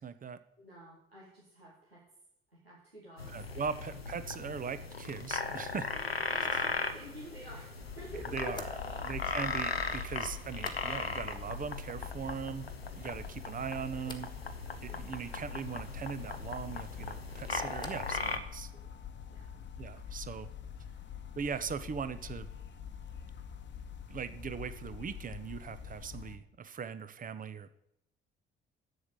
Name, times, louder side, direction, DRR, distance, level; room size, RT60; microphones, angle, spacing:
voice 1, 0.0-0.4 3.3-5.9 8.3-8.7 9.0-14.3 14.8-18.7 19.8-20.5 21.3-22.5 24.1-27.7, right 6 dB, 30° right, 12 dB, 0.9 m, -40 dB
voice 2, 0.6-2.0 2.5-3.4 5.9-7.7 8.0-9.2 14.9-15.3 18.7-18.9 19.3-19.7 20.0-20.2 20.8-21.0, equal, 90° right, -7 dB, 1.9 m, -49 dB
sound 1, 3.2-18.4, left 4 dB, 90° left, 0.7 m, -38 dB
sound 2, 7.8-26.4, left 8 dB, 40° left, 1.1 m, -46 dB
sound 3, 8.5-11.3 11.6-12.2 12.5-13.2 14.0-14.4 16.8-18.2 18.5-19.1, left 2 dB, 15° left, 1.5 m, -53 dB
7.9 x 7.4 x 8.1 m, 0.77 s
figure-of-eight pair, 50°, 30 cm